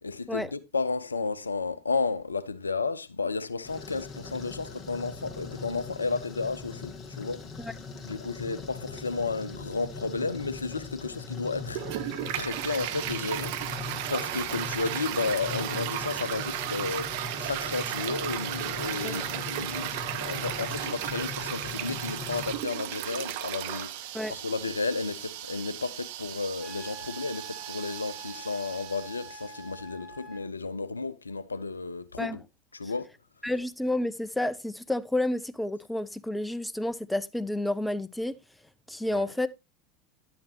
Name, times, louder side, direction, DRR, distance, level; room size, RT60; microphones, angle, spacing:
voice 1, 0.0-7.5 8.0-11.8 12.3-32.4 32.7-33.1 39.1-39.3, left 4 dB, 85° left, 0.4 m, -33 dB
sound 1, 3.6-22.6, left 4 dB, 30° left, 1.6 m, -41 dB
Toilet flush, 11.7-29.6, right 13 dB, 60° right, 0.6 m, -35 dB
Wind instrument woodwind instrument, 26.6-30.5, right 3 dB, 30° right, 5.1 m, -46 dB
voice 2, 33.4-38.3 38.9-39.5, left 1 dB, 5° left, 0.6 m, -30 dB
10.5 x 8.6 x 2.7 m
figure-of-eight pair, 80°, 0 cm